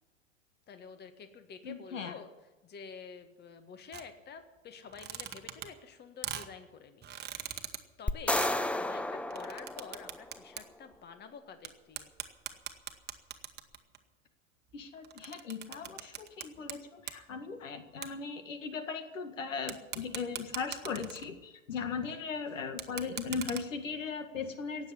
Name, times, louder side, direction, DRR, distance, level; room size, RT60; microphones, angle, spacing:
voice 1, 0.7-2.3 2.6-7.6 8.0-12.1, left 6 dB, 25° left, 9 dB, 1.6 m, -49 dB
voice 2, 1.6-2.1 14.7-24.9, left 5 dB, 80° left, 8 dB, 1.9 m, -38 dB
sound 1, 3.9-4.0 4.8-5.9 6.2-6.5 7.0-7.8 8.3-8.6 9.3-10.6 10.9-11.0 11.6-11.7 12.0-14.0 14.7-16.7 17.0-17.2 18.0-18.1 19.7-21.4 22.7-23.6, right 10 dB, 25° right, 1.4 m, -40 dB
sound 2, 8.1-10.5, left 1 dB, 5° left, 0.4 m, -32 dB
18.0 x 7.6 x 10.0 m, 1.1 s
hypercardioid pair, 95°, 38 cm